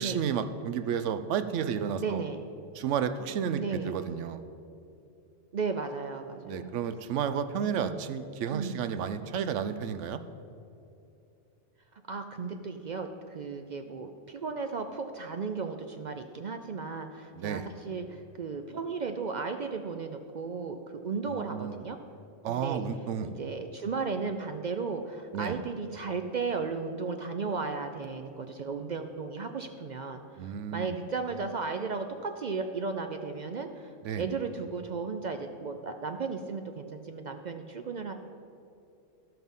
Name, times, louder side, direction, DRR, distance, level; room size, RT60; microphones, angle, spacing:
voice 1, 0.0-2.2 2.7-4.4 6.5-10.2 17.3-17.7 21.3-21.8 22.4-23.3 25.3-25.6 30.4-30.9 34.0-34.3, right 7 dB, 75° right, 11 dB, 0.9 m, -32 dB
voice 2, 2.0-2.4 3.6-3.9 5.5-6.7 7.6-8.1 8.5-8.8 12.1-22.0 22.5-22.8 23.2-33.9 34.2-38.1, right 4 dB, 60° right, 6 dB, 0.5 m, -35 dB
13.5 x 5.7 x 5.4 m, 2.7 s
omnidirectional pair, 1.3 m